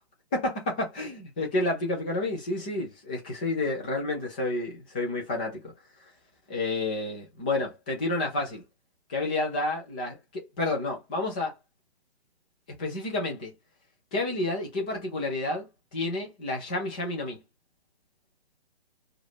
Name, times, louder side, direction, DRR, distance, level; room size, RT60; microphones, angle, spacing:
voice 1, 0.3-5.6 6.5-8.6 9.1-11.5 12.8-13.5 14.1-17.4, left 2 dB, 10° left, 0.5 m, -30 dB
4.9 x 2.5 x 3.2 m
figure-of-eight pair, 135°, 33 cm